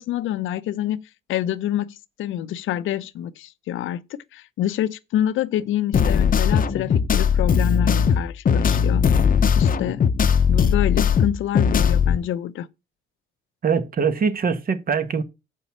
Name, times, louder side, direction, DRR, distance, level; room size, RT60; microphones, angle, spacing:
voice 1, 0.0-9.3 9.6-10.0 10.5-12.7, left 11 dB, 80° left, 0.7 m, -27 dB
sound 1, 5.9-12.2, left 7 dB, 45° left, 0.8 m, -19 dB
voice 2, 13.6-15.2, right 6 dB, 45° right, 1.5 m, -22 dB
7.5 x 5.5 x 7.2 m
cardioid pair, 90°, 20 cm